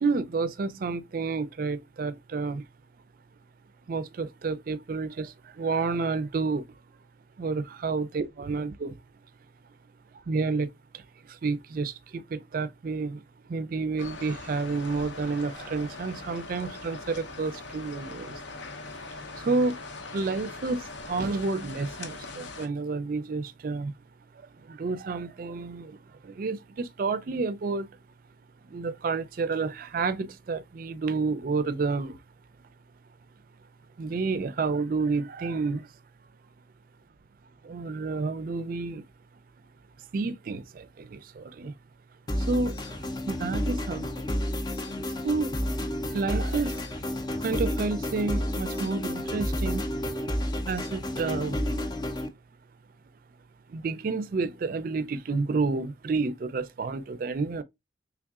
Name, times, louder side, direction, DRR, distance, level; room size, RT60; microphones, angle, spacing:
voice 1, 0.0-2.6 3.9-6.6 7.4-9.0 10.3-10.7 10.9-11.0 11.4-13.2 13.5-18.3 19.4-19.8 20.1-23.9 24.7-26.0 26.2-27.9 28.7-32.2 34.0-35.9 37.6-39.0 40.1-41.7 42.5-43.0 43.3-44.3 45.2-45.5 46.1-46.9 47.4-49.9 50.7-51.8 53.7-57.6, right 4 dB, 50° right, 0.4 m, -30 dB
sound 1, 14.0-22.7, left 3 dB, 75° left, 0.7 m, -41 dB
sound 2, 42.3-52.3, left 1 dB, 25° left, 0.4 m, -31 dB
3.6 x 3.5 x 2.3 m
head